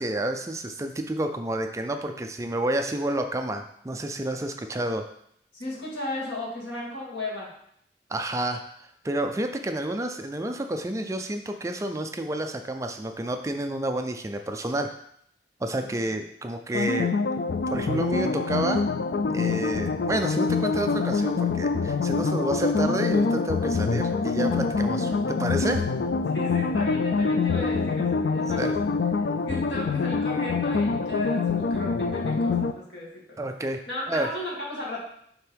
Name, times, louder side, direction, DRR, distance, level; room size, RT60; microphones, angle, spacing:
voice 1, 0.0-5.0 8.1-8.6 9.0-14.9 15.6-17.1 17.7-18.8 19.3-25.8 28.6-28.7 33.4-33.8 34.1-34.3, right 1 dB, 15° right, 6 dB, 0.4 m, -29 dB
voice 2, 5.5-7.5 15.8-16.1 24.9-25.2 26.3-28.8 29.4-33.4 33.9-35.0, left 1 dB, 85° left, -4 dB, 2.3 m, -35 dB
sound 1, 16.7-32.7, left 4 dB, 65° left, 0.4 m, -25 dB
9.0 x 3.6 x 3.5 m, 0.70 s
head